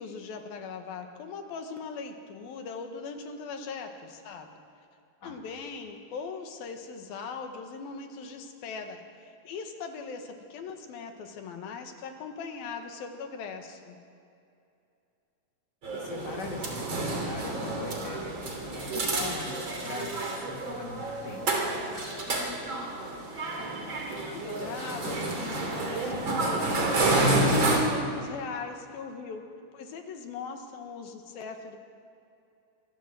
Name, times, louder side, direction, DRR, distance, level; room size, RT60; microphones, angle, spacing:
voice 1, 0.0-4.5 5.2-14.0 24.3-26.6 26.9-29.4 29.7-31.8, left 5 dB, 75° left, 5 dB, 3.3 m, -40 dB
sound 1, 15.8-27.8, right 2 dB, 35° right, 3.4 m, -29 dB
voice 2, 16.0-18.4 18.7-21.7, left 3 dB, 35° left, 1 dB, 2.3 m, -41 dB
25.5 x 13.5 x 7.6 m, 2.6 s
omnidirectional pair, 4.4 m